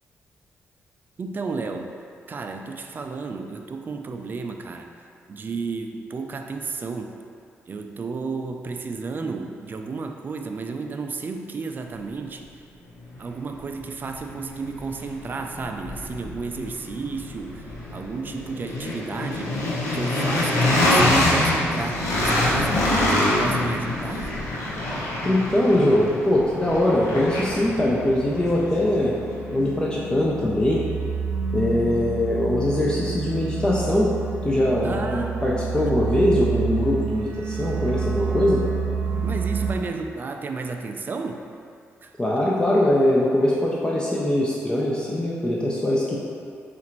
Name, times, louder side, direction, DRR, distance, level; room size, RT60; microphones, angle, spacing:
voice 1, 1.2-1.9 2.3-4.9 5.3-7.1 7.7-12.5 13.2-17.6 17.9-19.6 19.9-24.4 34.8-35.9 39.2-41.4 42.0-42.1, right 4 dB, 40° right, 4 dB, 0.3 m, -32 dB
sound 1, 13.2-13.3 13.7-29.7, left 1 dB, 80° left, 0.8 m, -25 dB
voice 2, 25.2-29.1 29.5-30.8 31.5-34.1 34.4-38.6 42.2-46.2, left 1 dB, 20° left, -5 dB, 0.5 m, -22 dB
sound 2, 26.6-39.7, right 5 dB, 25° right, 1.1 m, -29 dB
4.0 x 2.5 x 4.4 m, 2.3 s
cardioid pair, 90°, 5 cm